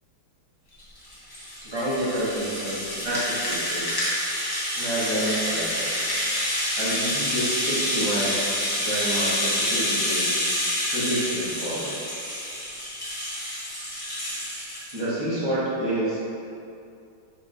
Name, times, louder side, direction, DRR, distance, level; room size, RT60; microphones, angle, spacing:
Rattle (instrument), 0.8-15.0, equal, 30° left, 0.4 m, -28 dB
voice 1, 1.6-2.8 3.0-3.9 4.8-5.9 6.8-8.4 8.8-10.4 10.9-11.9 14.9-16.3, right 1 dB, 15° right, -10 dB, 1.0 m, -28 dB
4.7 x 4.5 x 2.5 m, 2.5 s
omnidirectional pair, 2.2 m